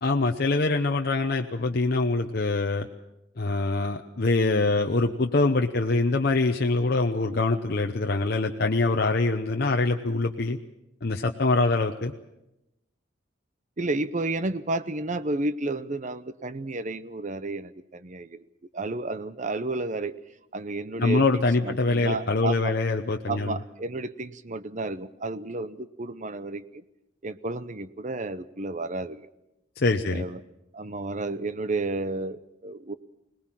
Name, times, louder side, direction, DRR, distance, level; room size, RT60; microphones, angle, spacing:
voice 1, 0.0-2.9 3.4-10.6 11.0-12.1 21.0-23.6 29.8-30.2, left 3 dB, 55° left, 4 dB, 0.8 m, -24 dB
voice 2, 13.8-18.4 18.7-20.1 20.5-22.8 23.3-26.8 27.2-29.3 30.0-30.4 30.7-32.9, right 2 dB, 40° right, 13 dB, 0.8 m, -32 dB
21.5 x 19.5 x 7.5 m, 0.93 s
head